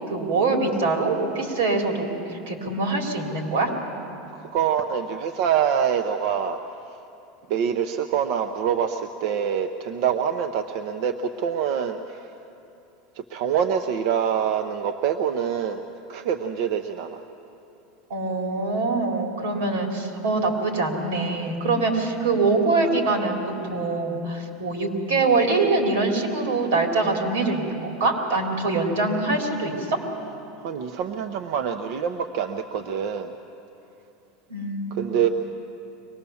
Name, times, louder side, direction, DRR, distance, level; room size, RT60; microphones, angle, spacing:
voice 1, 0.1-3.7 18.1-23.4 23.7-30.0 34.5-35.0, right 3 dB, 90° right, 1 dB, 3.7 m, -24 dB
voice 2, 4.4-6.6 7.5-12.3 13.3-17.2 30.6-33.3 34.9-35.3, right 8 dB, 50° right, 6 dB, 0.7 m, -25 dB
24.0 x 19.5 x 7.1 m, 2.8 s
supercardioid pair, 170°, 0 cm